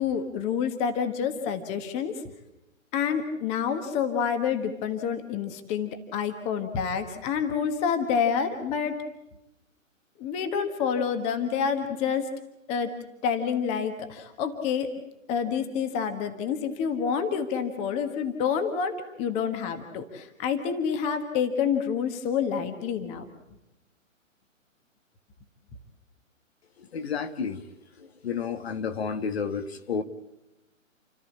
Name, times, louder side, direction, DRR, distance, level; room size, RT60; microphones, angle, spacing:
voice 1, 0.0-2.2 2.9-9.0 10.2-12.3 12.7-12.9 13.2-14.9 15.3-23.2, left 7 dB, 15° left, 8 dB, 1.5 m, -28 dB
voice 2, 26.9-27.6 28.0-30.0, left 6 dB, 50° left, 8 dB, 1.5 m, -31 dB
30.0 x 13.5 x 8.5 m, 0.90 s
figure-of-eight pair, 140°, 40 cm